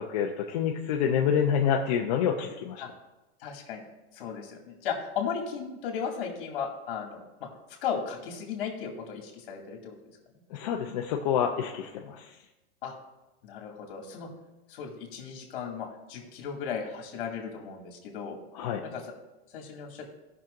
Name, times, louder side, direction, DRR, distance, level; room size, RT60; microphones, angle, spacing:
voice 1, 0.0-2.8 10.5-12.3 18.5-18.8, left 8 dB, 40° left, 0 dB, 0.6 m, -27 dB
voice 2, 3.4-3.8 4.1-7.5 7.8-10.0 12.8-12.9 13.4-14.3 14.7-18.4 18.9-19.0 19.5-20.1, left 7 dB, 55° left, 1 dB, 2.2 m, -36 dB
17.0 x 6.0 x 2.5 m, 1.0 s
supercardioid pair, 175°, 33 cm